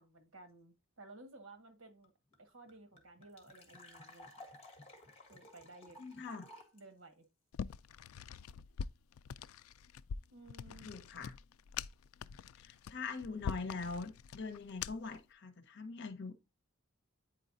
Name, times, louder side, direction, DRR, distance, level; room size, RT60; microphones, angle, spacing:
voice 1, 0.0-2.1 2.4-4.5 5.3-6.0 6.7-7.3 10.3-10.9, right 2 dB, 75° right, 1.6 m, -56 dB
sound 1, 2.0-2.1 2.3-2.4 2.7-6.8, left 2 dB, 30° left, 1.7 m, -56 dB
voice 2, 6.0-6.5 10.8-11.3 12.6-16.3, left 4 dB, 60° left, 1.0 m, -43 dB
sound 2, 7.5-15.2, left 7 dB, 85° left, 0.3 m, -44 dB
9.0 x 4.7 x 2.6 m
head